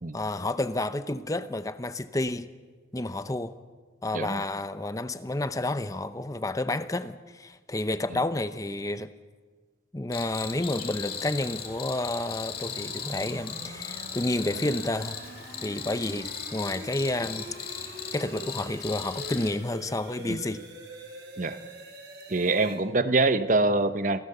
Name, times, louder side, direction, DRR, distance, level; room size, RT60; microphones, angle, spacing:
voice 1, 0.1-2.5 2.9-3.5 4.0-9.1 9.9-15.2 15.6-20.6, left 2 dB, 20° left, 0.7 m, -30 dB
voice 2, 4.1-4.4 20.3-20.4 21.4-21.6 22.3-24.2, right 2 dB, 45° right, 0.9 m, -24 dB
Cricket, 10.1-19.5, left 7 dB, 55° left, 2.5 m, -38 dB
sound 1, 12.6-22.8, right 1 dB, 70° right, 5.8 m, -45 dB
26.5 x 17.0 x 6.8 m
head